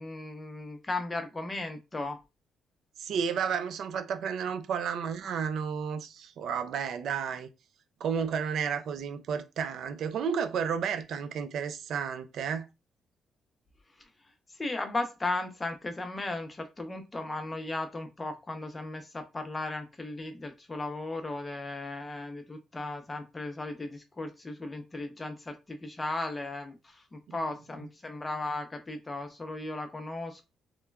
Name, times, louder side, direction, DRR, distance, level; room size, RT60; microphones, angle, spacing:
voice 1, 0.0-2.2 14.6-30.4, left 2 dB, 25° left, 0.6 m, -36 dB
voice 2, 3.0-7.5 8.0-12.7, right 7 dB, 70° right, 0.4 m, -32 dB
3.0 x 2.1 x 2.3 m
cardioid pair, 90°, 0 cm